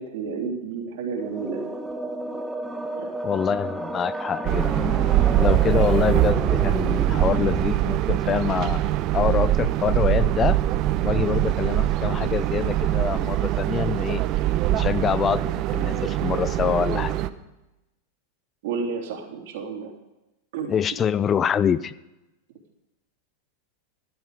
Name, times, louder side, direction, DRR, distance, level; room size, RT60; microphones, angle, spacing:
voice 1, 0.0-1.7 3.0-3.1 18.6-19.9 20.5-20.7, right 5 dB, 65° right, 1 dB, 3.3 m, -31 dB
sound 1, 1.1-7.6, right 1 dB, 5° right, 1.2 m, -31 dB
voice 2, 3.2-4.9 5.4-10.6 11.0-14.2 14.7-17.2 20.7-21.9, left 8 dB, 25° left, 17 dB, 0.5 m, -25 dB
sound 2, 4.4-17.3, right 14 dB, 45° right, 0.7 m, -23 dB
14.0 x 11.5 x 5.0 m, 0.98 s
hypercardioid pair, 110°, 0 cm